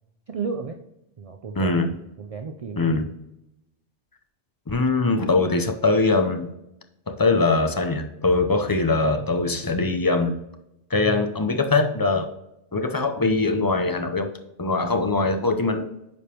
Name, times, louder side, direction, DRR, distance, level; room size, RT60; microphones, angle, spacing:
voice 1, 0.3-0.8 1.2-1.9 2.2-3.0, right 5 dB, 45° right, 5 dB, 0.5 m, -33 dB
voice 2, 1.6-2.0 2.8-3.1 4.7-6.5 7.1-10.4 10.9-12.3 12.7-14.3 14.6-15.9, left 3 dB, 25° left, 6 dB, 0.4 m, -22 dB
9.3 x 5.1 x 2.9 m, 0.86 s
omnidirectional pair, 1.2 m